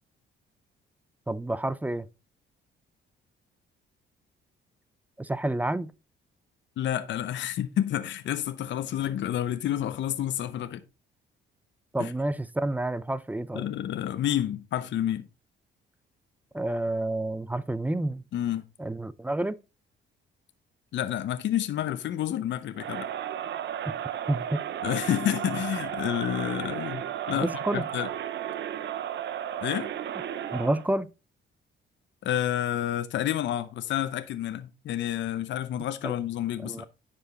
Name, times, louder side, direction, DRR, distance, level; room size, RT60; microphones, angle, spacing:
voice 1, 1.3-2.1 5.2-5.9 11.9-13.8 16.5-18.2 18.8-19.6 23.9-24.0 24.3-24.6 27.3-27.9 30.5-31.1 36.0-36.1 36.6-36.8, right 1 dB, 10° right, 0.5 m, -29 dB
voice 2, 6.8-10.8 12.0-12.1 13.5-15.3 18.3-18.6 20.9-23.1 24.8-27.5 27.7-28.1 29.6-29.9 32.2-36.8, left 11 dB, 65° left, 0.7 m, -29 dB
Crowd, 22.8-30.9, right 10 dB, 65° right, 0.8 m, -34 dB
9.9 x 5.1 x 3.9 m
cardioid pair, 90°, 20 cm